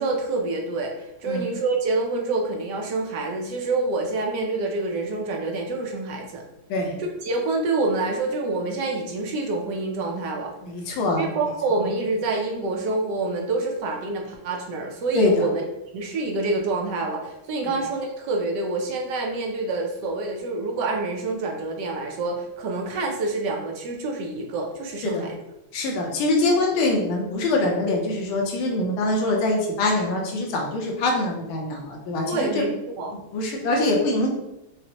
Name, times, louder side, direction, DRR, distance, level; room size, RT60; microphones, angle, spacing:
voice 1, 0.0-6.4 7.2-10.5 11.2-15.6 15.9-25.4 32.2-32.7 33.0-33.2, right 3 dB, 70° right, 1 dB, 1.0 m, -27 dB
voice 2, 10.6-11.3 15.1-15.4 25.0-25.3 25.7-32.6 33.3-34.3, left 2 dB, 75° left, 0 dB, 1.5 m, -23 dB
5.7 x 2.1 x 2.8 m, 0.90 s
omnidirectional pair, 2.3 m